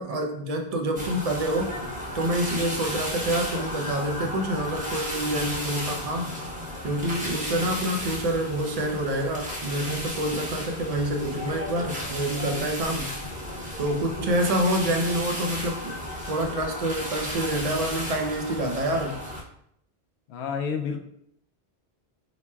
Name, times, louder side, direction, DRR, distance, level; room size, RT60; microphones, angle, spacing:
voice 1, 0.0-1.7 2.1-6.4 6.8-13.1 13.8-16.0 16.2-19.2, right 1 dB, 45° right, 2 dB, 0.5 m, -27 dB
sound 1, 1.0-19.4, equal, 10° right, 0.8 m, -34 dB
voice 2, 20.3-21.0, left 6 dB, 85° left, 4 dB, 0.8 m, -29 dB
4.1 x 3.0 x 2.2 m, 0.72 s
omnidirectional pair, 1.1 m